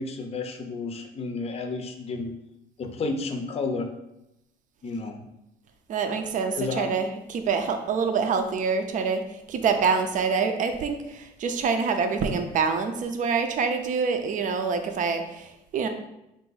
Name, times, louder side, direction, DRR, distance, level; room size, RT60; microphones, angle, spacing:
voice 1, 0.0-2.4 2.8-3.9 4.8-5.2 6.5-6.9, left 3 dB, 35° left, 6 dB, 0.6 m, -31 dB
voice 2, 5.9-9.2 9.5-15.9, right 5 dB, 50° right, 6 dB, 0.5 m, -26 dB
3.8 x 2.6 x 3.9 m, 0.89 s
cardioid pair, 110°, 17 cm